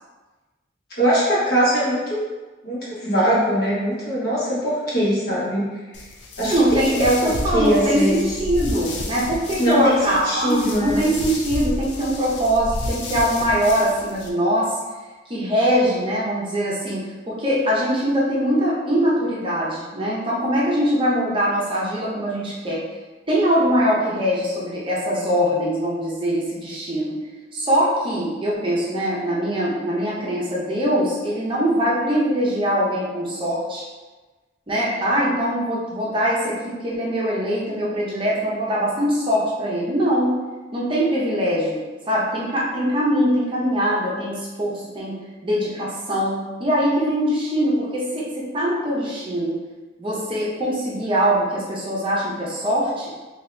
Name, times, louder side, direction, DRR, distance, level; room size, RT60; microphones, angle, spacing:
voice 1, 1.0-2.2 2.6-5.7 6.4-6.8 7.2-8.3 9.6-11.0, equal, 55° left, -9 dB, 1.4 m, -21 dB
sound 1, 5.9-14.3, left 1 dB, 70° left, 0.5 m, -31 dB
voice 2, 6.4-14.7 15.3-22.8 23.3-27.1 27.5-33.8 34.7-40.3 40.7-41.8 42.1-45.2 45.4-49.6 50.0-53.1, equal, 30° right, -6 dB, 0.6 m, -22 dB
2.7 x 2.7 x 3.2 m, 1.2 s
head